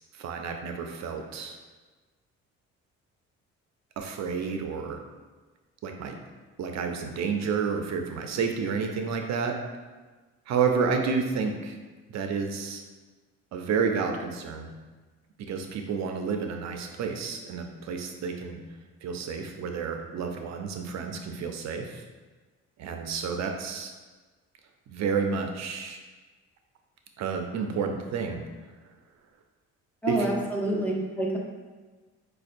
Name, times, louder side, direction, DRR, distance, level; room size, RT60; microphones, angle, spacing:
voice 1, 0.1-1.6 4.0-5.0 5.8-6.2 6.6-9.6 10.5-11.8 12.1-12.8 13.5-14.7 15.4-18.6 19.0-22.0 22.8-23.9 24.9-26.0 27.2-28.4 30.1-30.3, right 5 dB, 65° right, 4 dB, 0.5 m, -30 dB
voice 2, 30.0-31.4, right 1 dB, 5° left, -2 dB, 0.7 m, -27 dB
5.2 x 2.2 x 2.5 m, 1.3 s
cardioid pair, 90°, 30 cm